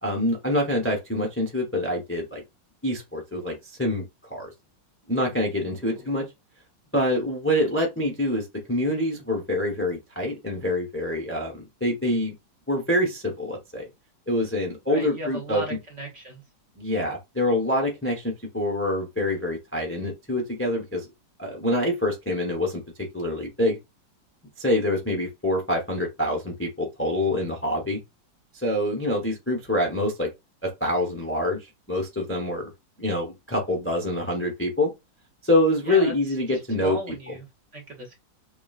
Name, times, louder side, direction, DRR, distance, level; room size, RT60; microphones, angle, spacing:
voice 1, 0.0-2.4 2.8-4.0 4.3-4.5 5.1-6.2 6.9-12.3 12.7-13.8 14.3-15.8 16.8-21.1 21.4-23.8 24.6-28.0 28.5-30.3 30.6-32.7 33.0-34.9 35.4-37.3, left 1 dB, 15° left, 0.4 m, -26 dB
voice 2, 5.8-6.1 14.9-16.4 35.8-36.1 36.8-37.5 37.7-38.1, equal, 50° right, 1.1 m, -36 dB
5.9 x 2.3 x 2.4 m
omnidirectional pair, 2.0 m